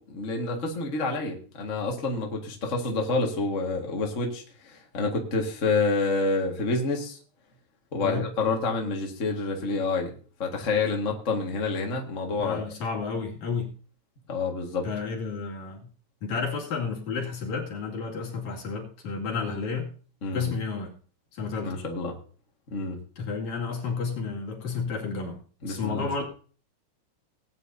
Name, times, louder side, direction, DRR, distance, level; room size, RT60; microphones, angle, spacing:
voice 1, 0.0-7.2 7.9-12.6 14.3-14.9 20.2-20.5 21.6-22.1 22.7-23.0 25.6-26.2, left 3 dB, 30° left, 1 dB, 1.6 m, -28 dB
voice 2, 12.4-13.7 14.8-15.8 16.2-19.9 20.3-20.9 21.3-21.8 23.2-25.4 25.7-26.2, left 5 dB, 65° left, -1 dB, 3.5 m, -31 dB
19.0 x 9.4 x 2.7 m, 0.40 s
omnidirectional pair, 3.6 m